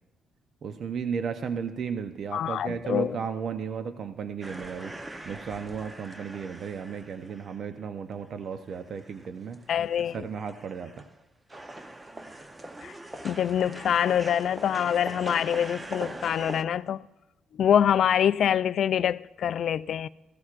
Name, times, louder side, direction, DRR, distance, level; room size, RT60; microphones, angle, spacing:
voice 1, 0.6-9.7 10.1-11.1, right 6 dB, 60° right, 0.7 m, -34 dB
voice 2, 2.3-3.2 9.7-10.3 12.8-12.9 13.2-17.0 17.5-20.1, left 9 dB, 65° left, 0.3 m, -25 dB
sound 1, 4.4-7.8 8.3-8.4 8.7-11.2 11.5-16.6, right 1 dB, 20° right, 0.8 m, -42 dB
15.5 x 14.0 x 2.5 m
cardioid pair, 90°, 0 cm